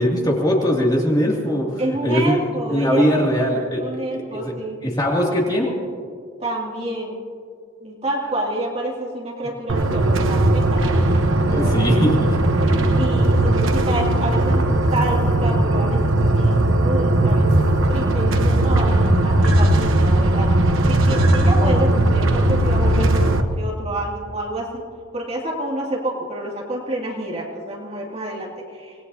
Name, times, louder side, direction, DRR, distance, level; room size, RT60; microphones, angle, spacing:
voice 1, 0.0-1.7 2.0-2.4 2.7-3.8 4.1-4.5 4.8-5.7 11.5-12.4, equal, 20° left, -3 dB, 2.5 m, -20 dB
voice 2, 1.8-3.2 3.8-4.8 6.4-7.2 7.8-11.0 11.5-12.2 12.6-24.8 25.1-28.9, right 1 dB, 30° right, -3 dB, 2.5 m, -28 dB
sound 1, 9.7-23.4, right 1 dB, 65° right, 1.0 m, -18 dB
25.5 x 19.5 x 2.8 m, 2.2 s
head